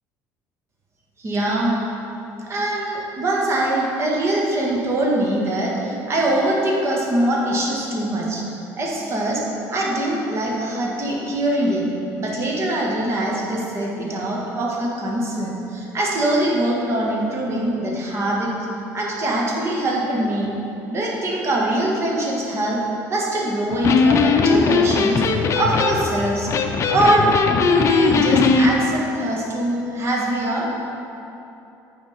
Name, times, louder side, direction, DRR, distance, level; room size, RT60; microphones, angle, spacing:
voice 1, 1.2-1.8 2.4-8.4 8.8-9.4 9.7-11.9 12.2-18.5 18.9-20.5 20.9-22.8 23.1-26.5 26.9-30.7, right 1 dB, 35° right, -2 dB, 1.5 m, -22 dB
Electric guitar, 23.7-28.7, left 5 dB, 40° left, 0.5 m, -19 dB
8.8 x 5.1 x 4.2 m, 2.8 s
cardioid pair, 110°, 8 cm